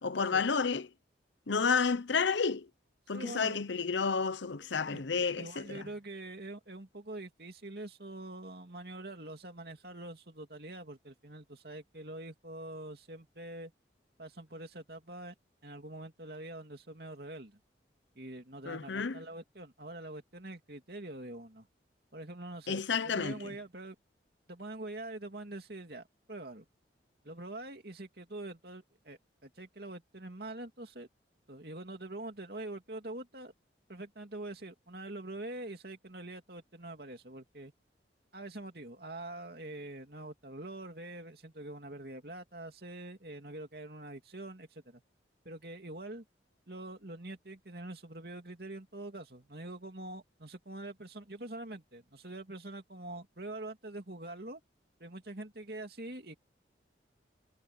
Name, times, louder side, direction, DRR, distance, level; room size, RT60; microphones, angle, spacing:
voice 1, 0.0-0.9 1.5-2.7 3.1-5.9 18.7-19.2 22.7-23.5, left 5 dB, 80° left, 0.8 m, -31 dB
voice 2, 3.1-3.6 4.7-13.7 14.2-15.3 15.6-17.6 18.2-21.7 22.1-23.9 24.5-26.6 27.2-31.1 31.5-33.5 33.9-37.7 38.3-45.0 45.4-46.2 46.7-54.6 55.0-56.4, right 2 dB, 55° right, 2.9 m, -44 dB
head